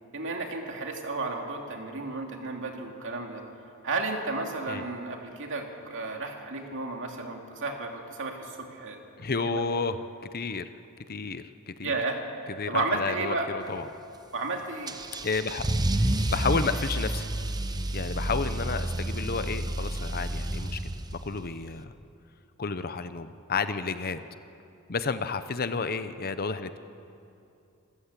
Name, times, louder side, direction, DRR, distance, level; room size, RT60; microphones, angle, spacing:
voice 1, 0.1-3.4 3.8-9.0 9.4-9.6 11.8-12.2 12.7-13.5 14.3-14.9, right 3 dB, 60° right, 2 dB, 2.7 m, -32 dB
voice 2, 9.2-10.0 10.3-10.7 11.1-12.0 12.6-13.9 15.2-15.6 16.0-17.3 17.9-21.9 22.6-24.2 24.9-26.8, left 4 dB, 45° left, 11 dB, 0.8 m, -31 dB
Car / Engine starting / Accelerating revving vroom, 14.9-21.4, right 1 dB, 20° right, 0.8 m, -30 dB
26.5 x 15.0 x 8.3 m, 2.7 s
head